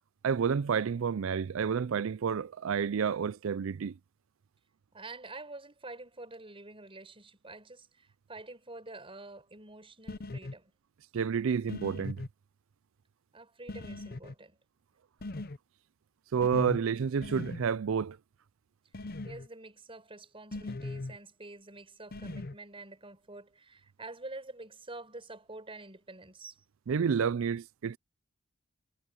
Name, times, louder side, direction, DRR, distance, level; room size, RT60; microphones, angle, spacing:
voice 1, 0.2-4.0 11.1-12.2 16.3-18.2 26.9-28.0, right 6 dB, 70° right, 0.4 m, -30 dB
voice 2, 4.9-10.7 13.3-14.6 19.2-26.6, right 2 dB, 25° right, 5.9 m, -47 dB
sound 1, 10.1-10.5 11.7-12.3 13.7-14.3 15.2-15.6 16.4-16.8 17.2-17.6 18.9-19.5 20.5-21.2 22.1-22.6, left 2 dB, 45° left, 0.8 m, -39 dB
head